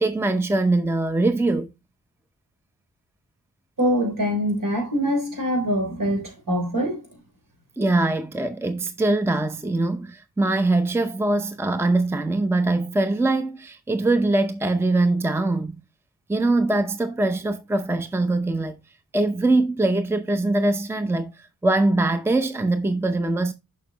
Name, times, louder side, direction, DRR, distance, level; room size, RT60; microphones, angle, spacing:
voice 1, 0.0-1.7 7.8-15.8 16.3-18.8 19.1-23.5, right 2 dB, 5° right, 0.6 m, -22 dB
voice 2, 3.8-7.0, equal, 60° right, 3.6 m, -24 dB
6.7 x 6.2 x 2.9 m
cardioid pair, 60°, 36 cm